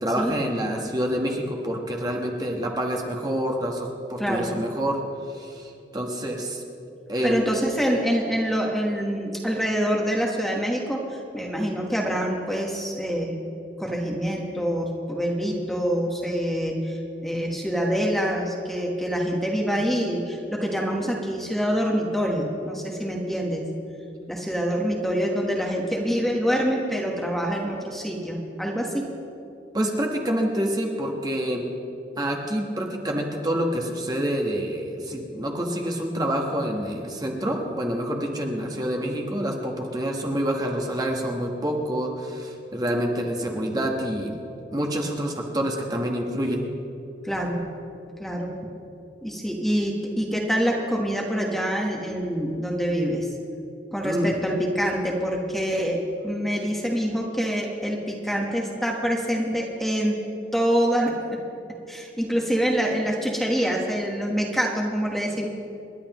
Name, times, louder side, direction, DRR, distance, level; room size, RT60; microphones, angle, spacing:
voice 1, 0.0-5.0 5.3-6.6 7.1-7.4 29.7-31.6 32.2-44.4 44.7-46.7 54.0-54.4, equal, 20° right, 0 dB, 1.2 m, -27 dB
voice 2, 4.2-4.5 7.2-13.4 13.8-23.6 24.3-29.1 47.2-47.6 48.2-48.6 49.2-53.3 53.9-60.2 60.5-61.1 61.9-65.5, equal, ahead, -1 dB, 1.2 m, -26 dB
28.0 x 11.0 x 3.0 m, 2.7 s
head